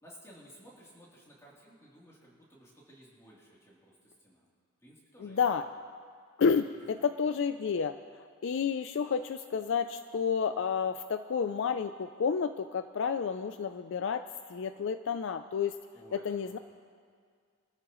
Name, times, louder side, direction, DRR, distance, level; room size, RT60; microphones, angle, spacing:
voice 1, 0.0-4.5 4.8-5.7 6.5-6.6 7.0-7.4 15.9-16.6, equal, 15° left, -6 dB, 3.1 m, -56 dB
voice 2, 5.2-5.7 6.4-14.2 14.5-15.8 16.1-16.6, left 6 dB, 55° left, 10 dB, 0.4 m, -30 dB
25.0 x 13.5 x 3.1 m, 2.1 s
head